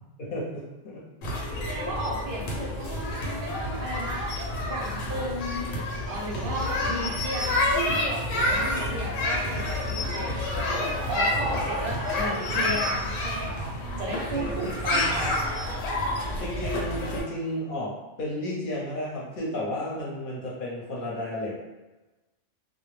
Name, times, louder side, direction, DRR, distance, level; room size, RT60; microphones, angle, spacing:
voice 1, 0.2-1.0 14.3-14.6 14.9-15.3 16.4-21.6, left 1 dB, 50° left, -5 dB, 0.8 m, -33 dB
sound 1, 1.2-17.2, left 1 dB, 85° left, 1.0 m, -29 dB
voice 2, 1.7-4.2 4.7-13.7 14.0-15.4, right 1 dB, 55° right, -2 dB, 0.7 m, -34 dB
2.1 x 2.1 x 3.1 m, 1.1 s
omnidirectional pair, 1.3 m